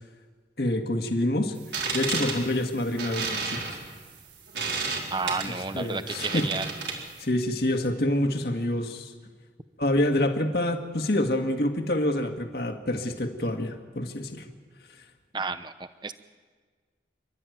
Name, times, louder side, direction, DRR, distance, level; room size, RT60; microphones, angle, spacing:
voice 1, 0.6-1.6 1.9-3.8 5.4-6.5 7.2-9.1 9.8-14.5, left 1 dB, 60° left, 4 dB, 1.9 m, -27 dB
sound 1, 1.6-7.2, right 4 dB, 75° right, 4.3 m, -32 dB
voice 2, 5.1-6.7 15.3-16.1, right 4 dB, 25° right, 11 dB, 0.8 m, -31 dB
29.0 x 12.5 x 9.3 m, 1.5 s
head